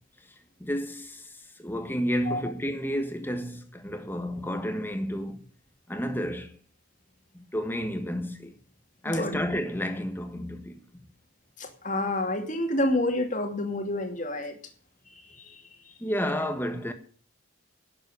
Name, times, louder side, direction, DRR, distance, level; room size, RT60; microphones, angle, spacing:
voice 1, 0.6-5.4 5.9-6.6 7.3-8.6 9.0-11.1 16.0-16.9, equal, 10° left, 1.7 m, -31 dB
voice 2, 9.0-9.4 11.6-14.6 15.1-15.9, left 1 dB, 35° left, 2.6 m, -29 dB
12.0 x 8.1 x 9.8 m
head